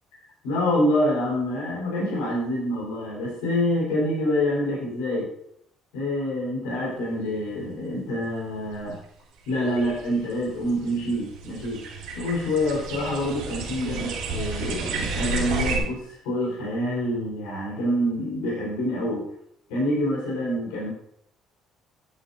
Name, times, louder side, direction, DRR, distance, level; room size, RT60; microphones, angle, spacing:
voice 1, 0.4-5.3 5.9-9.0 9.5-11.8 12.1-19.2 19.7-20.9, left 1 dB, 80° left, -4 dB, 4.1 m, -26 dB
sound 1, 8.7-8.8 9.5-15.8, right 4 dB, 80° right, 1.8 m, -32 dB
13.5 x 9.0 x 2.6 m, 0.73 s
hypercardioid pair, 55°, 0 cm